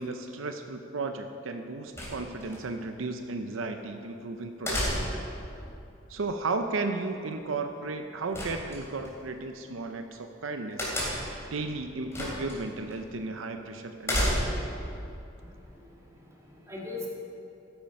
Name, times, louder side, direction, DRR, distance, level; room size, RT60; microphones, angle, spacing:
voice 1, 0.0-5.2 6.1-10.9 11.5-14.4, right 3 dB, 80° right, 6 dB, 0.6 m, -34 dB
sound 1, 2.0-2.6 4.7-5.3 8.3-9.1 10.8-11.4 12.1-12.6 12.9-13.0 14.0-14.7, equal, 15° left, 3.2 m, -30 dB
voice 2, 15.4-17.1, left 3 dB, 15° right, -4 dB, 2.3 m, -42 dB
13.0 x 8.8 x 5.3 m, 2.7 s
head